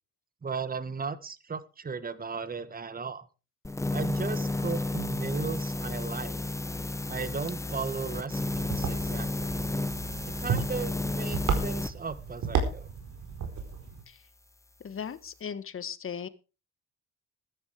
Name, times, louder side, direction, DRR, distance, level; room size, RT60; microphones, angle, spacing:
voice 1, 0.4-3.3 3.9-6.3 7.1-9.6 10.4-12.9, right 5 dB, 30° right, 15 dB, 1.6 m, -36 dB
sound 1, 3.6-11.9, left 2 dB, 10° left, 0.9 m, -32 dB
sound 2, 8.4-14.0, right 5 dB, 70° right, 4.5 m, -33 dB
voice 2, 14.8-16.3, left 7 dB, 45° left, 14 dB, 1.6 m, -37 dB
14.0 x 11.5 x 4.8 m, 0.32 s
cardioid pair, 90°, 30 cm